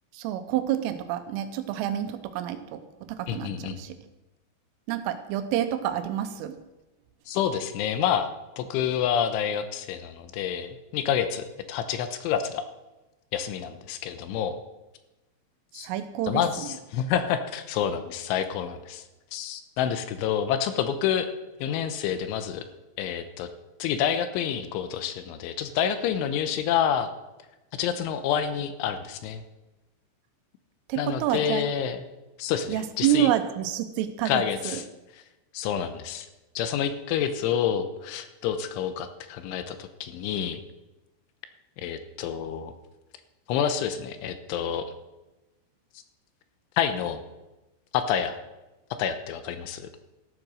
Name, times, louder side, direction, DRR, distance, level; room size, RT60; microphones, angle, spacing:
voice 1, 0.1-4.0 4.9-6.6 15.8-16.7 30.9-31.7 32.7-34.8, right 11 dB, 85° right, 10 dB, 3.4 m, -28 dB
voice 2, 3.3-3.8 7.3-8.3 8.6-12.6 13.3-14.6 15.7-15.9 16.3-19.0 19.3-21.3 21.6-22.6 23.0-23.5 23.8-27.1 27.7-29.4 31.0-32.0 32.4-33.3 34.3-34.9 35.1-35.2 35.5-36.3 36.6-40.6 41.8-42.7 43.5-44.8 46.8-47.2 47.9-48.4 49.0-49.9, left 9 dB, 80° left, 9 dB, 3.1 m, -28 dB
14.0 x 7.8 x 6.3 m, 1.0 s
omnidirectional pair, 5.7 m